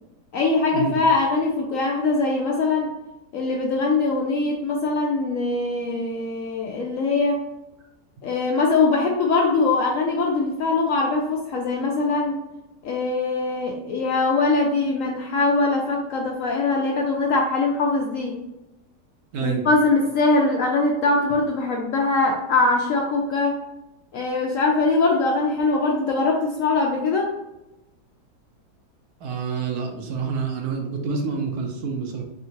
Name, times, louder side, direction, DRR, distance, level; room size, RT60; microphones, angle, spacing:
voice 1, 0.3-2.9 3.3-7.4 8.2-12.4 12.8-18.3 19.4-23.6 24.1-27.3, left 3 dB, 70° left, 0 dB, 0.8 m, -22 dB
voice 2, 19.3-19.6 29.2-32.2, right 5 dB, 70° right, 2 dB, 1.1 m, -27 dB
3.7 x 3.6 x 2.8 m, 0.97 s
omnidirectional pair, 1.8 m